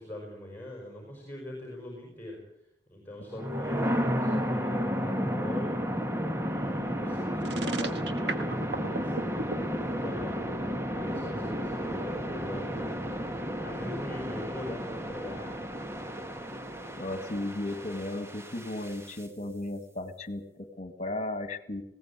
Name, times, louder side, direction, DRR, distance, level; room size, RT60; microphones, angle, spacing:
voice 1, 0.0-2.4 2.9-6.0 6.2-8.6 8.8-10.4 10.9-13.1 13.6-15.6, left 1 dB, 10° left, 0 dB, 5.5 m, -42 dB
sound 1, 3.3-19.2, equal, 15° right, 1.7 m, -32 dB
sound 2, 7.4-9.6, right 3 dB, 75° right, 1.8 m, -33 dB
voice 2, 16.9-21.8, left 1 dB, 40° left, 10 dB, 2.1 m, -35 dB
20.0 x 17.5 x 8.5 m, 0.82 s
head